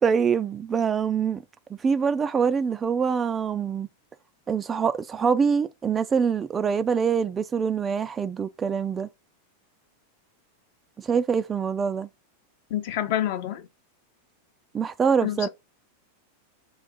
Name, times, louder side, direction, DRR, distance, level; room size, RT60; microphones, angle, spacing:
voice 1, 0.0-1.4 1.8-3.9 4.5-9.1 11.0-12.1 14.7-15.5, right 6 dB, 20° right, 0.3 m, -24 dB
voice 2, 12.7-13.6 15.2-15.5, left 11 dB, 50° left, 0.7 m, -27 dB
3.9 x 2.5 x 3.7 m
figure-of-eight pair, 90°, 0 cm